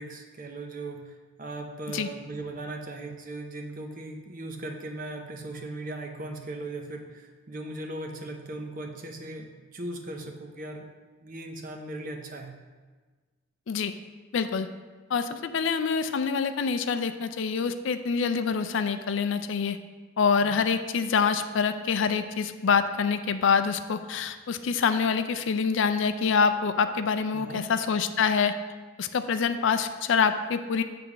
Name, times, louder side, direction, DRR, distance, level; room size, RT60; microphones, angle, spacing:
voice 1, 0.0-10.9 11.2-12.5 20.4-20.6 27.3-27.6, right 2 dB, 40° right, 3 dB, 0.7 m, -38 dB
voice 2, 14.3-14.7 15.1-19.8 20.2-28.5 29.0-30.8, left 5 dB, 60° left, 10 dB, 0.4 m, -26 dB
8.4 x 3.4 x 5.9 m, 1.4 s
head